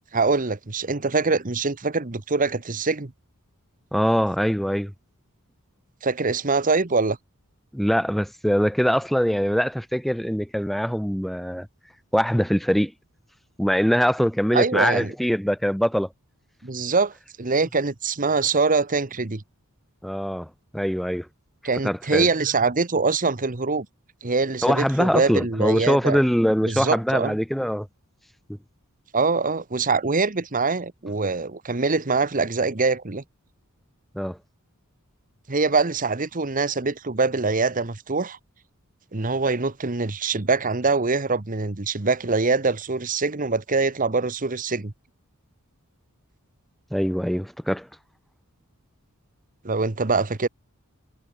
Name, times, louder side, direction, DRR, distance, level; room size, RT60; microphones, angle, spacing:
voice 1, 0.1-3.1 6.0-7.2 14.5-15.1 16.6-19.4 21.6-23.9 24.2-26.2 26.6-27.4 29.1-33.2 35.5-38.4 39.1-44.9 49.6-50.5, right 4 dB, 40° right, 1.2 m, -24 dB
voice 2, 3.9-4.9 7.7-11.7 12.1-12.9 13.6-16.1 20.0-20.5 20.7-21.3 21.8-22.3 24.6-27.9 34.1-34.4 46.9-47.9, equal, ahead, 0.7 m, -23 dB
head